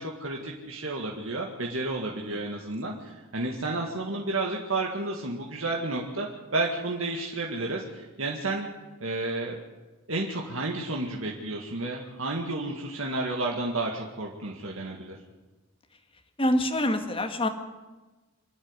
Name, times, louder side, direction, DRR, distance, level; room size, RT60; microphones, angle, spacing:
voice 1, 0.0-6.3 6.5-8.7 9.0-9.6 10.1-15.2, right 2 dB, 70° right, -1 dB, 2.1 m, -31 dB
voice 2, 16.4-17.5, left 1 dB, 25° left, 5 dB, 1.8 m, -25 dB
26.0 x 10.5 x 9.9 m, 1.2 s
head